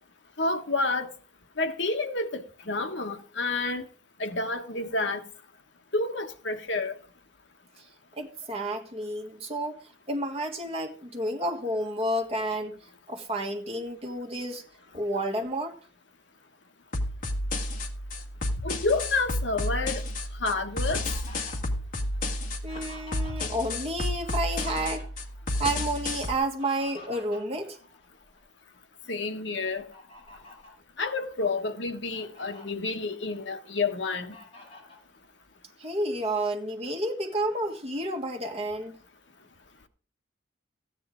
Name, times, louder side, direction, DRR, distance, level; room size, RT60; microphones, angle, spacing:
voice 1, 0.4-1.1 1.6-3.8 4.2-5.2 5.9-7.0 18.6-20.0 20.4-21.0 29.1-29.9 31.0-34.3, left 3 dB, 70° left, 1.2 m, -29 dB
voice 2, 8.2-12.8 13.1-14.6 14.9-15.8 22.6-25.1 25.6-27.8 35.8-38.9, right 1 dB, 30° right, 1.8 m, -30 dB
sound 1, 16.9-26.3, left 1 dB, 45° left, 1.8 m, -31 dB
Fowl, 20.3-23.6 23.9-25.4 26.3-28.4 28.9-29.1 29.7-30.8 31.4-31.5 31.9-32.6 33.2-33.9 34.3-35.0, left 1 dB, 30° left, 5.9 m, -48 dB
14.5 x 9.7 x 3.7 m
head